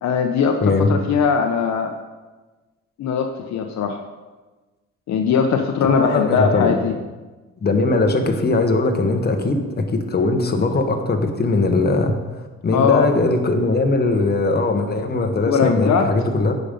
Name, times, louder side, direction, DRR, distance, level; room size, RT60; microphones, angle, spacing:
voice 1, 0.0-1.9 3.0-4.0 5.1-6.9 12.7-13.1 15.4-16.1, left 6 dB, 65° left, 5 dB, 0.8 m, -20 dB
voice 2, 5.9-6.8 7.6-16.5, left 3 dB, 30° left, 5 dB, 1.2 m, -20 dB
9.8 x 5.4 x 5.3 m, 1.2 s
cardioid pair, 90°, 30 cm